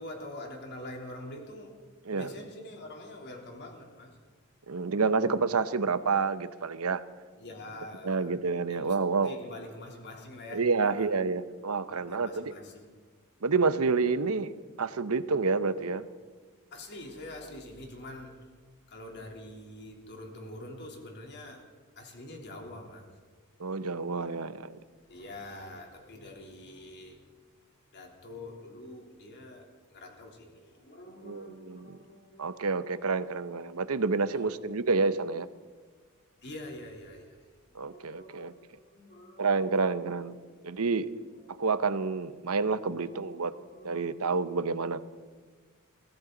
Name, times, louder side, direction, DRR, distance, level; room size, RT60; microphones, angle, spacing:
voice 1, 0.0-1.8 2.1-4.2 7.3-8.4 8.7-8.9 9.2-11.1 11.9-12.9 16.7-18.3 18.9-21.6 22.0-23.1 24.8-27.2 27.9-33.0 34.3-34.6 36.4-37.4 37.8-39.6 40.4-40.6 41.2-41.5 43.1-44.2, left 1 dB, 55° left, 1 dB, 3.3 m, -45 dB
voice 2, 4.7-7.0 8.0-9.3 10.5-12.5 13.4-16.0 23.6-24.8 31.2-32.0 32.4-35.5 37.7-38.5 39.4-40.4 40.6-41.1 41.6-43.5 43.8-45.0, right 4 dB, 85° right, 13 dB, 0.9 m, -29 dB
23.0 x 16.0 x 3.9 m, 1.5 s
head